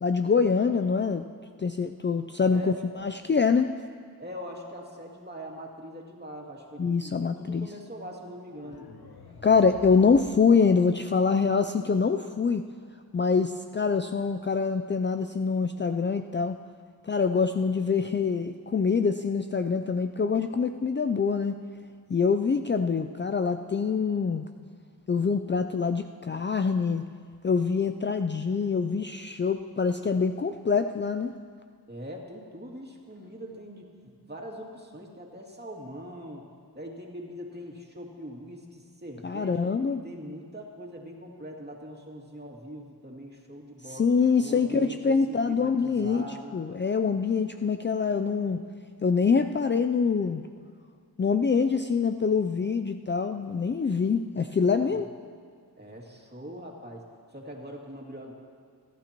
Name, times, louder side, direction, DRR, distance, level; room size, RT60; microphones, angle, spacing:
voice 1, 0.0-1.2 1.6-2.7 3.0-3.7 6.8-7.7 9.4-12.6 13.1-16.6 17.0-21.6 22.1-24.4 25.1-27.0 27.4-31.3 39.2-40.0 43.9-46.2 46.5-48.6 49.0-50.4 51.2-55.1, left 5 dB, 30° left, 8 dB, 0.4 m, -25 dB
voice 2, 2.4-2.8 4.2-8.9 31.9-36.4 36.7-39.7 40.0-44.1 44.4-46.5 54.9-55.0 55.8-57.1 57.3-58.3, equal, 25° right, -1 dB, 2.5 m, -42 dB
sound 1, 8.5-11.5, left 4 dB, 75° left, 1.1 m, -49 dB
24.5 x 11.5 x 3.0 m, 2.1 s
cardioid pair, 55°, 38 cm